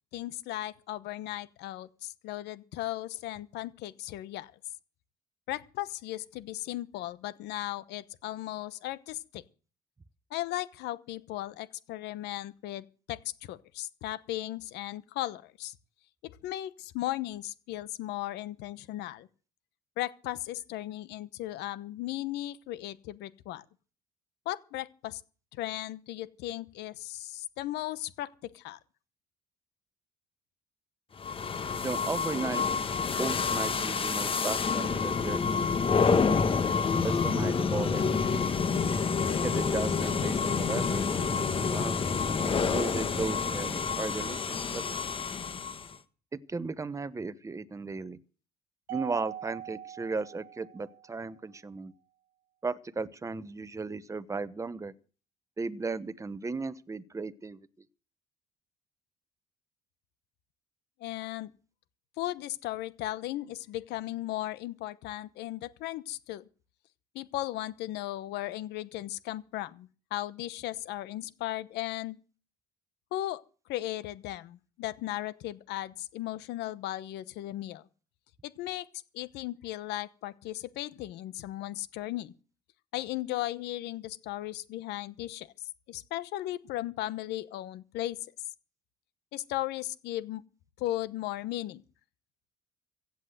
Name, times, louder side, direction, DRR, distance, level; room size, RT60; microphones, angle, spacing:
voice 1, 0.1-4.5 5.5-9.4 10.3-15.7 16.4-19.3 20.0-23.6 24.4-25.2 25.5-28.8 61.0-61.5 62.2-66.5 67.1-72.2 73.1-73.4 73.7-77.9 78.4-78.9 79.1-82.3 82.9-85.5 85.9-88.2 89.3-90.4 90.8-91.8, left 15 dB, 85° left, 1.0 m, -36 dB
sound 1, 31.2-46.0, left 5 dB, 30° left, 1.1 m, -28 dB
voice 2, 31.7-32.6 33.2-35.8 37.0-38.6 39.4-42.0 42.7-44.8 46.3-48.2 48.9-51.9 52.6-54.9 55.6-57.6, right 4 dB, 20° right, 0.9 m, -36 dB
Mallet percussion, 48.9-51.3, right 11 dB, 85° right, 1.1 m, -42 dB
16.0 x 8.3 x 7.8 m
cardioid pair, 110°, 17 cm